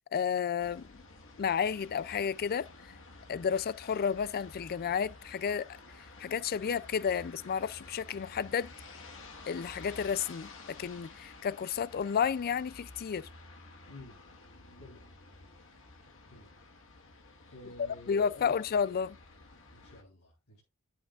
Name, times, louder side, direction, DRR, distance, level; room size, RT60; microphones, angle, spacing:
voice 1, 0.1-1.0 1.4-2.7 3.3-5.7 6.2-8.7 9.5-13.3 18.1-19.2, left 7 dB, 45° left, 0.4 m, -31 dB
sound 1, 0.6-20.0, left 3 dB, 60° left, 1.5 m, -52 dB
voice 2, 13.9-14.2 14.8-15.1 16.3-16.6 17.5-18.5 19.7-20.6, left 1 dB, 80° left, 3.6 m, -51 dB
11.0 x 8.5 x 2.5 m
head